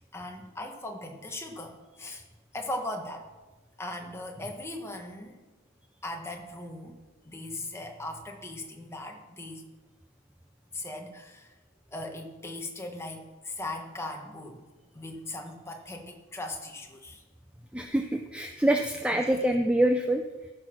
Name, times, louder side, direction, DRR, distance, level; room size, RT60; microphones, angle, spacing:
voice 1, 0.0-2.2 2.5-3.3 3.8-5.4 6.0-9.7 10.7-11.6 11.9-14.6 14.9-17.2 19.1-19.3, left 1 dB, 10° left, 3 dB, 1.2 m, -39 dB
voice 2, 17.7-20.2, right 1 dB, 5° right, 5 dB, 0.4 m, -25 dB
14.5 x 6.1 x 6.2 m, 1.2 s
head